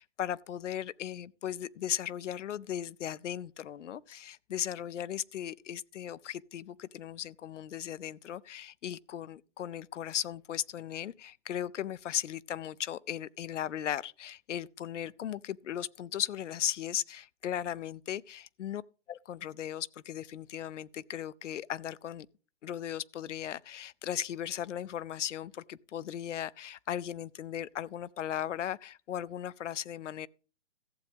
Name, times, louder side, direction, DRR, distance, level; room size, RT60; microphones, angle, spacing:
voice 1, 0.0-18.8 19.1-22.3 22.6-30.3, left 10 dB, 75° left, 0.6 m, -37 dB
15.0 x 8.0 x 3.5 m
hypercardioid pair, 165°, 36 cm